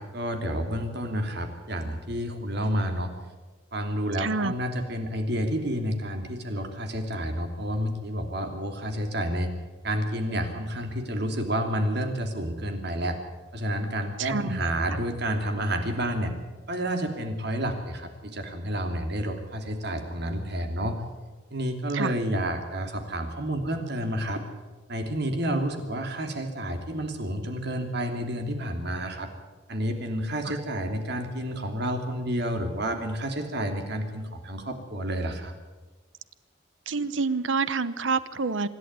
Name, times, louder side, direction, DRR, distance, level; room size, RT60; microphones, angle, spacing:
voice 1, 0.0-3.1 3.7-9.5 9.8-13.2 13.5-16.3 16.7-21.0 21.5-24.4 24.9-29.3 29.7-35.5, equal, 60° right, 5 dB, 2.9 m, -30 dB
voice 2, 4.2-4.5 14.2-14.6 21.9-22.1 30.4-30.6 36.9-38.7, right 4 dB, 80° right, 15 dB, 0.9 m, -27 dB
26.0 x 11.0 x 9.5 m, 1.2 s
head